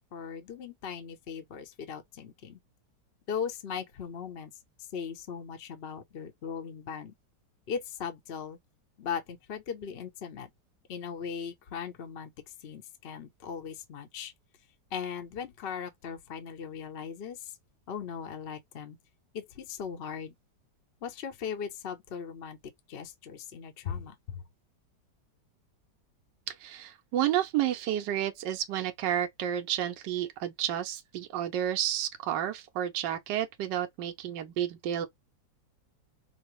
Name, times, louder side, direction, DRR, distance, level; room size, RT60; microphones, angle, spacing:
voice 1, 0.1-2.6 3.3-4.5 4.9-7.1 7.7-8.6 9.0-10.5 10.9-12.3 12.6-14.3 14.9-17.5 17.9-19.0 19.3-20.3 21.0-22.6 22.9-24.4, left 7 dB, 55° left, 0.7 m, -38 dB
voice 2, 26.5-35.1, right 11 dB, 80° right, 1.3 m, -31 dB
5.2 x 2.0 x 3.1 m
omnidirectional pair, 1.9 m